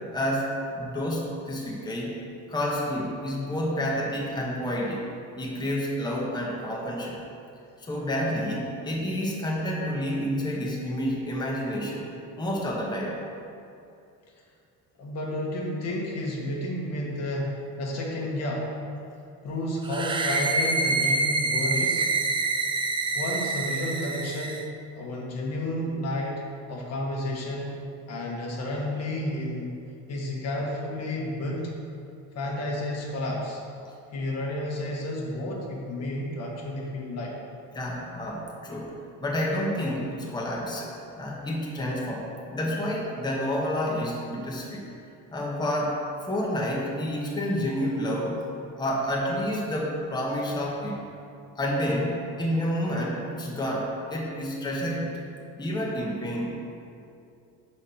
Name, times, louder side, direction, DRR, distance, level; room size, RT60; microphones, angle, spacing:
voice 1, 0.1-2.1 2.5-5.1 5.4-7.2 7.8-12.1 12.4-13.2 37.7-38.9 39.2-40.9 41.2-42.3 42.5-44.9 45.3-48.4 48.8-51.0 51.6-55.1 55.6-56.6, equal, 15° left, -4 dB, 1.1 m, -29 dB
voice 2, 15.0-18.7 19.4-22.0 23.1-24.6 25.0-26.4 26.7-27.8 28.1-29.7 30.1-31.7 32.3-33.6 34.1-37.3, left 1 dB, 55° left, -2 dB, 1.3 m, -31 dB
sound 1, 19.8-24.7, right 3 dB, 15° right, 0.4 m, -26 dB
4.9 x 4.3 x 5.5 m, 2.6 s
cardioid pair, 100°, 31 cm